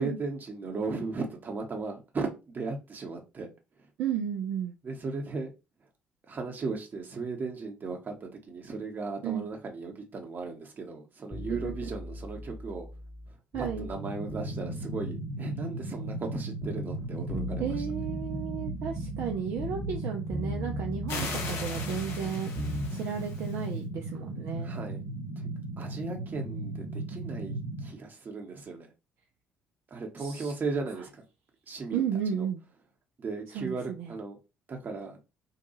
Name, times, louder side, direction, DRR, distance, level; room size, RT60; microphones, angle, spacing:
voice 1, 0.0-3.5 4.8-5.5 6.3-12.9 13.6-17.8 24.6-25.1 25.4-25.5 25.8-28.9 29.9-31.2 31.7-32.5 33.2-34.4 34.7-35.2, right 4 dB, 35° right, 2 dB, 0.9 m, -36 dB
voice 2, 4.0-4.8 9.2-9.5 11.5-11.7 13.5-13.9 17.6-24.7 30.2-30.5 31.9-32.6 33.5-34.1, right 8 dB, 55° right, 2 dB, 0.4 m, -33 dB
sound 1, 11.3-14.0 14.3-16.4 16.6-20.0 20.3-22.9 23.2-23.3, equal, 10° left, 0.9 m, -39 dB
sound 2, 13.9-27.9, right 2 dB, 85° right, 0.8 m, -37 dB
sound 3, 21.1-23.7, left 4 dB, 60° left, 0.7 m, -39 dB
2.7 x 2.2 x 2.8 m, 0.28 s
figure-of-eight pair, 45°, 5 cm